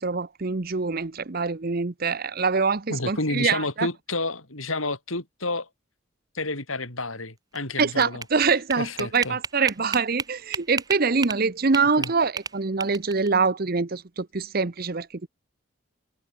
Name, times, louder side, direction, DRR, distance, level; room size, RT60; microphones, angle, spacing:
voice 1, 0.0-3.9 7.8-15.3, right 4 dB, 45° right, 0.8 m, -24 dB
voice 2, 2.9-5.7 6.3-8.2 8.8-9.4 12.0-12.1, left 2 dB, 85° left, 7.8 m, -30 dB
sound 1, 7.6-11.4 11.7-13.3, right 5 dB, 20° right, 1.0 m, -33 dB
head